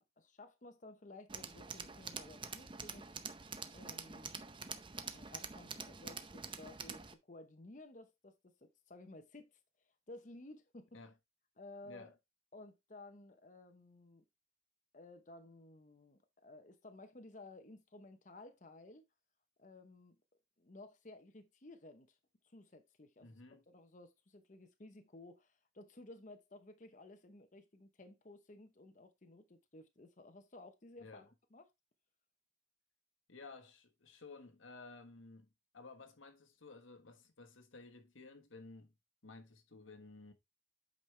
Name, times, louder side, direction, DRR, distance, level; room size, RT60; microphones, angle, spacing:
voice 1, 0.2-3.1 3.7-4.3 5.1-9.5 10.1-11.0 11.6-12.1 12.5-14.2 14.9-19.0 19.6-20.2 20.6-22.2 22.4-31.7, left 2 dB, 40° left, 0.8 m, -56 dB
Tools, 1.3-7.1, right 5 dB, 25° right, 0.6 m, -46 dB
voice 2, 23.2-23.6 31.0-31.3 33.3-38.9 39.2-40.3, left 3 dB, 85° left, 1.4 m, -55 dB
8.4 x 5.3 x 3.2 m
head